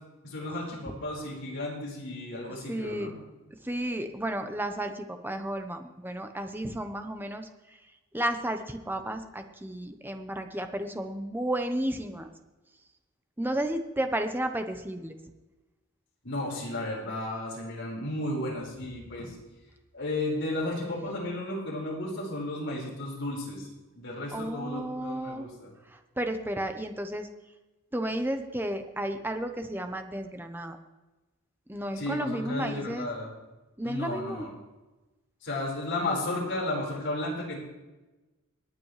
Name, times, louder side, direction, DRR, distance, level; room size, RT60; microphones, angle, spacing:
voice 1, 0.2-3.1 16.2-19.3 19.9-23.7 23.9-25.7 32.0-33.3 33.8-34.5 35.4-37.6, left 1 dB, 60° left, -4 dB, 4.9 m, -33 dB
voice 2, 2.7-3.1 3.6-7.8 8.1-12.3 13.4-15.2 24.3-25.5 25.9-27.3 27.9-30.8 31.7-33.1 33.8-34.5, right 1 dB, 10° right, 6 dB, 0.9 m, -33 dB
27.5 x 9.2 x 3.3 m, 1.1 s
head